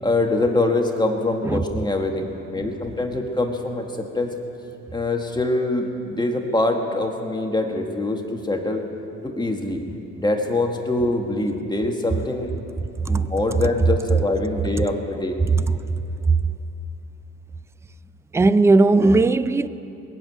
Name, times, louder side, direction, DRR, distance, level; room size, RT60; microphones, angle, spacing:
voice 1, 0.0-4.3 4.9-8.8 9.2-9.8 10.2-12.5 13.1-15.4, left 2 dB, 15° left, 1.6 m, -24 dB
voice 2, 18.3-19.7, right 3 dB, 10° right, 0.4 m, -16 dB
21.0 x 7.5 x 9.3 m
cardioid pair, 90°, 30 cm